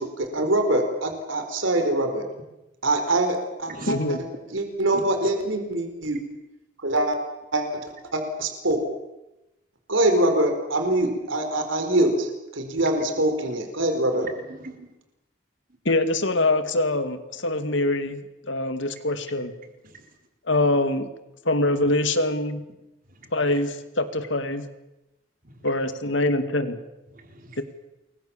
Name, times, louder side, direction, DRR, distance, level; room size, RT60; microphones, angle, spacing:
voice 1, 0.0-2.2 2.8-4.2 4.5-6.2 6.8-7.2 7.5-7.8 8.1-8.8 9.9-12.3 12.5-14.3, right 1 dB, 75° right, 6 dB, 4.5 m, -24 dB
voice 2, 3.9-4.2 15.8-19.5 20.5-21.1 21.5-22.6 23.3-24.7 25.6-26.8, left 2 dB, 65° left, 9 dB, 2.4 m, -24 dB
voice 3, 4.9-5.3 14.1-14.9 25.4-25.5 27.1-27.6, right 2 dB, 45° right, 4 dB, 4.1 m, -40 dB
28.5 x 22.5 x 7.3 m, 0.97 s
head